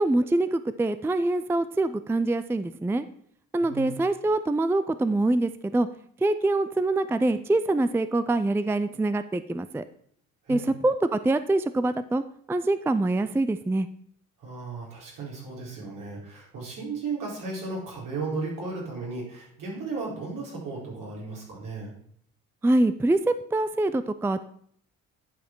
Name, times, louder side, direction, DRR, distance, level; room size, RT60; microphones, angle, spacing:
voice 1, 0.0-3.0 3.5-5.9 6.2-9.8 10.5-12.2 12.5-13.9 22.6-24.4, right 2 dB, 5° right, 13 dB, 0.4 m, -24 dB
voice 2, 3.6-4.0 10.4-10.7 14.4-21.9, right 4 dB, 70° right, -4 dB, 4.4 m, -35 dB
10.5 x 5.0 x 4.6 m, 0.64 s
hypercardioid pair, 60°, 33 cm